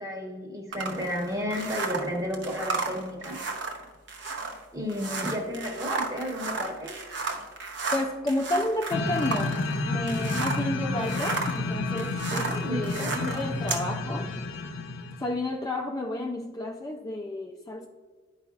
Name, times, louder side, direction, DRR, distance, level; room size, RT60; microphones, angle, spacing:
voice 1, 0.0-3.4 4.7-6.9 12.3-13.4, equal, 15° right, 0 dB, 1.2 m, -32 dB
sound 1, 0.7-10.7 11.0-13.9, right 4 dB, 65° right, 0.8 m, -33 dB
voice 2, 7.9-9.6 9.9-14.3 15.2-17.9, left 1 dB, 20° left, 2 dB, 0.3 m, -31 dB
sound 2, 8.9-15.3, left 2 dB, 90° left, 0.7 m, -30 dB
11.0 x 4.8 x 2.4 m, 1.5 s
head